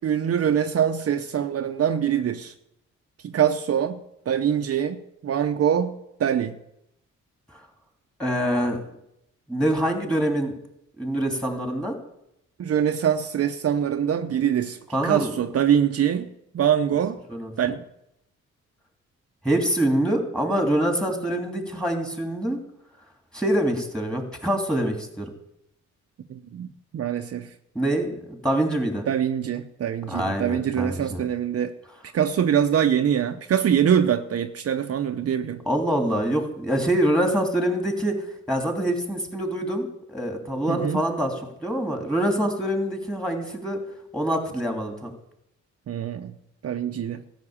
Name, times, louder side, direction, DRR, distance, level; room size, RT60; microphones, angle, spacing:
voice 1, 0.0-2.5 3.2-4.0 4.3-6.6 12.6-14.8 15.0-16.3 16.5-17.2 17.6-17.8 26.3-26.7 26.9-27.5 29.1-31.7 32.1-35.6 40.7-41.0 45.9-46.3 46.6-47.2, right 9 dB, 55° right, 0.7 m, -24 dB
voice 2, 8.2-8.8 9.5-10.5 11.0-11.9 14.9-15.3 17.3-17.5 19.4-22.6 23.3-25.3 27.7-29.1 30.1-31.2 35.7-38.2 38.5-41.3 41.6-43.8 44.1-45.1, right 1 dB, 5° left, 2.8 m, -25 dB
13.5 x 6.0 x 8.7 m
cardioid pair, 75°, 30 cm